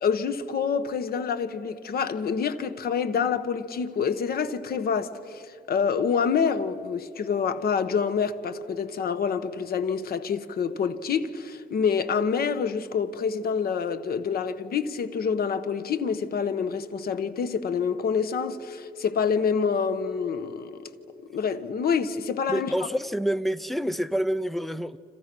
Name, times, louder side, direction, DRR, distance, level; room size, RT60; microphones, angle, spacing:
voice 1, 0.0-20.8 21.3-22.7, left 6 dB, 65° left, 1.1 m, -27 dB
voice 2, 22.5-25.0, equal, ahead, 0.6 m, -27 dB
29.5 x 26.0 x 6.1 m
wide cardioid pair, 150°, 17 cm